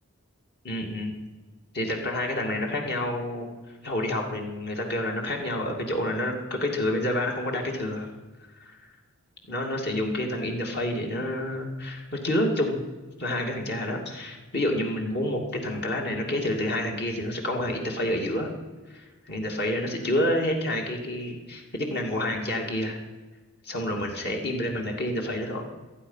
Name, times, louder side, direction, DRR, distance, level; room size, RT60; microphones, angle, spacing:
voice 1, 0.6-1.1 1.7-3.5 3.8-8.1 9.5-12.8 13.2-18.5 18.9-23.0 23.6-25.6, left 1 dB, 45° left, 1 dB, 2.6 m, -28 dB
27.0 x 9.3 x 5.8 m, 1.3 s
head